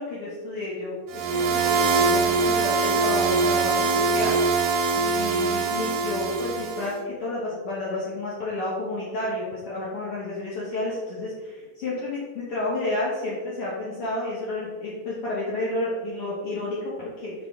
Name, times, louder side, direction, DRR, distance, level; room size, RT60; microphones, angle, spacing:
voice 1, 0.0-4.4 5.0-17.3, left 2 dB, 60° left, -6 dB, 1.8 m, -31 dB
sound 1, 1.1-6.9, right 4 dB, 75° right, 1.8 m, -23 dB
6.5 x 5.7 x 3.5 m, 1.4 s
omnidirectional pair, 3.4 m